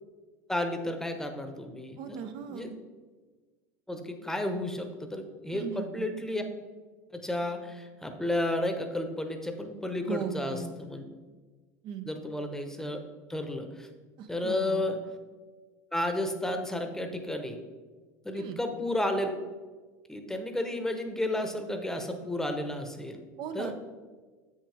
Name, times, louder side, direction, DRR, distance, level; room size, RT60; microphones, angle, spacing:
voice 1, 0.5-2.2 2.5-2.7 3.9-6.4 7.1-11.0 12.1-13.0 13.3-13.9 14.3-15.0 15.9-17.6 18.2-19.3 20.1-23.2 23.5-23.7, left 1 dB, 5° left, 6 dB, 0.9 m, -32 dB
voice 2, 2.0-2.7 5.5-6.1 10.1-10.7 11.8-12.1 14.2-14.9 18.3-18.6 23.4-23.8, right 7 dB, 55° right, 8 dB, 0.6 m, -38 dB
7.6 x 6.4 x 3.4 m, 1.4 s
supercardioid pair, 100°, 10 cm